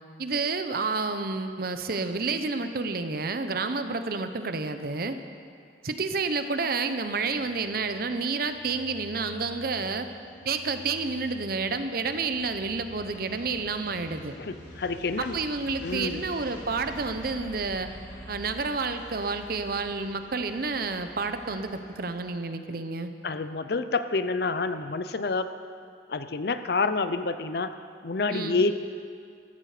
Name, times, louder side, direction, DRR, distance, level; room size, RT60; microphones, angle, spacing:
voice 1, 0.2-5.2 5.8-10.1 10.4-14.4 15.2-17.9 18.3-23.1 28.3-28.6, right 4 dB, 55° right, 9 dB, 0.8 m, -30 dB
sound 1, 6.6-22.3, left 1 dB, 90° left, 3.6 m, -47 dB
voice 2, 14.4-15.4 15.8-16.2 23.2-25.5 26.1-27.8 28.0-28.7, left 3 dB, 60° left, 11 dB, 0.6 m, -28 dB
14.5 x 13.5 x 5.0 m, 2.3 s
head